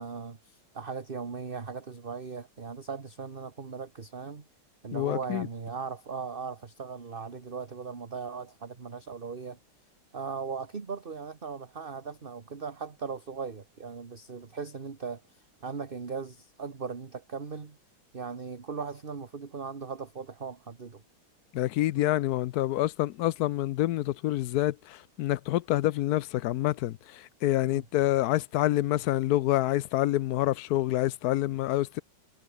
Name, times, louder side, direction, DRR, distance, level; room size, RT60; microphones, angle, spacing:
voice 1, 0.0-4.5 4.8-9.6 10.1-17.8 18.1-21.0 27.7-27.8, right 5 dB, 30° right, 1.5 m, -38 dB
voice 2, 4.9-5.5 21.5-32.0, left 15 dB, 85° left, 0.8 m, -27 dB
omnidirectional pair, 2.3 m